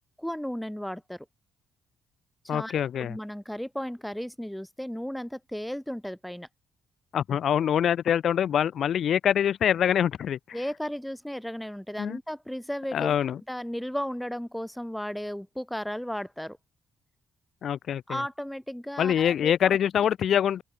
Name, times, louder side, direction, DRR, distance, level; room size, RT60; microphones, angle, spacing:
voice 1, 0.2-1.3 2.4-6.5 10.5-13.1 13.5-16.6 18.1-19.5, equal, 5° left, 0.5 m, -34 dB
voice 2, 2.5-3.2 7.1-10.6 12.0-12.2 12.9-13.4 17.6-18.2 19.0-20.6, left 9 dB, 65° left, 0.5 m, -25 dB
open air
cardioid pair, 90°, 0 cm